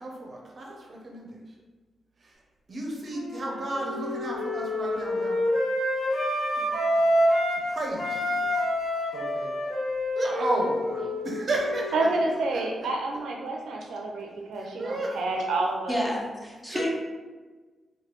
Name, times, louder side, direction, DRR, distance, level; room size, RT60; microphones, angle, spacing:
voice 1, 0.0-1.4 2.2-2.4 2.7-5.4 6.7-7.1 7.7-8.6 9.1-9.5 10.2-11.9 12.5-12.6 14.6-15.2 16.7-16.9, right 1 dB, 40° right, -1 dB, 0.6 m, -32 dB
Wind instrument woodwind instrument, 3.1-7.6 7.9-12.4, left 1 dB, 65° left, 1.3 m, -28 dB
voice 2, 11.9-16.0, right 2 dB, 85° right, 0 dB, 0.4 m, -29 dB
voice 3, 15.9-16.9, left 1 dB, 10° left, -3 dB, 0.5 m, -30 dB
3.0 x 2.2 x 3.1 m, 1.3 s
wide cardioid pair, 155°, 0 cm